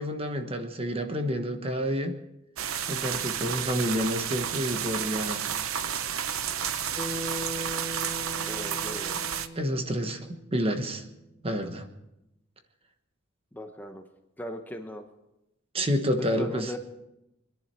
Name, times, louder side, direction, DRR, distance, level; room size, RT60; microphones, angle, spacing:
voice 1, 0.0-2.2 2.9-5.5 9.6-10.2 10.5-11.0 11.4-11.9 15.7-16.7, equal, 30° right, 6 dB, 1.2 m, -29 dB
sound 1, 2.6-9.5, right 8 dB, 85° right, 0.8 m, -31 dB
Bass guitar, 7.0-11.3, equal, 45° right, 7.4 m, -40 dB
voice 2, 8.5-9.3 13.5-14.0 14.4-15.0 16.4-16.8, equal, 10° left, 5 dB, 1.0 m, -38 dB
25.0 x 11.0 x 4.5 m, 0.89 s
head